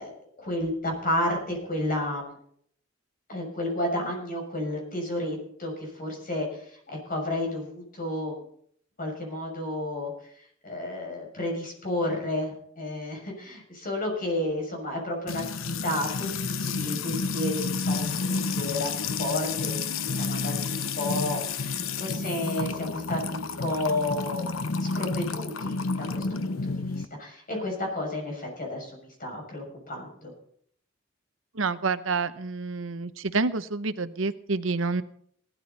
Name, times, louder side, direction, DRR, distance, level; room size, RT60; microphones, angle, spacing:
voice 1, 0.0-2.4 3.3-8.4 9.0-24.5 24.8-30.3, left 1 dB, 45° left, 1 dB, 6.7 m, -32 dB
Music / Water tap faucet / Trickle dribble, 15.3-27.0, left 4 dB, 80° left, 0.9 m, -30 dB
voice 2, 31.5-35.0, right 4 dB, 75° right, 12 dB, 0.9 m, -28 dB
18.5 x 13.0 x 4.1 m, 0.64 s
head